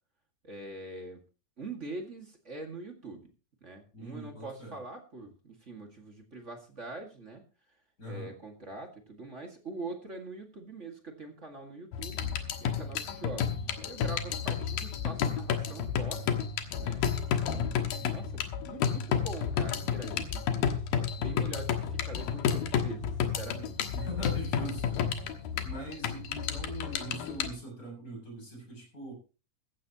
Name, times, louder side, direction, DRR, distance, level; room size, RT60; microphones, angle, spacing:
voice 1, 0.4-1.2 1.6-3.3 3.6-7.4 8.0-12.2 12.6-16.3 16.8-17.0 17.4-23.8, right 2 dB, 25° right, 4 dB, 1.7 m, -43 dB
voice 2, 3.9-4.8 8.0-8.3 23.9-25.0 25.6-29.1, right 1 dB, 25° left, 1 dB, 7.2 m, -41 dB
sound 1, 11.9-27.5, left 8 dB, 90° left, 3.1 m, -31 dB
15.0 x 15.0 x 2.9 m, 0.35 s
omnidirectional pair, 4.0 m